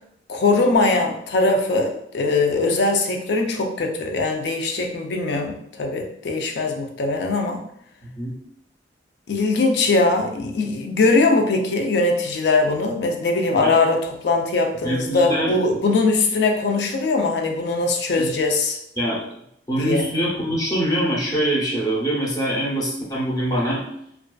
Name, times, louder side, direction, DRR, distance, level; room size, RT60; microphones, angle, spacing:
voice 1, 0.3-7.6 9.3-18.8 19.8-20.1, left 3 dB, 65° left, 3 dB, 0.4 m, -21 dB
voice 2, 14.8-15.5 18.2-18.4 19.0-19.2 19.7-23.8, right 1 dB, 20° left, -4 dB, 0.6 m, -23 dB
2.4 x 2.3 x 2.2 m, 0.73 s
head